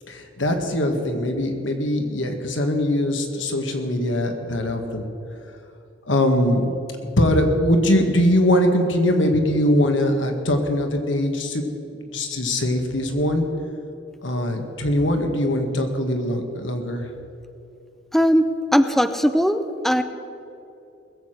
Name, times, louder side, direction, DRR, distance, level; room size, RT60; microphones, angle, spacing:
voice 1, 0.1-5.1 6.1-6.7 7.2-11.7 12.0-13.5 14.2-17.1, left 1 dB, 85° left, 4 dB, 1.8 m, -21 dB
voice 2, 18.1-20.0, equal, ahead, 9 dB, 0.5 m, -19 dB
20.5 x 7.8 x 6.6 m, 2.7 s
head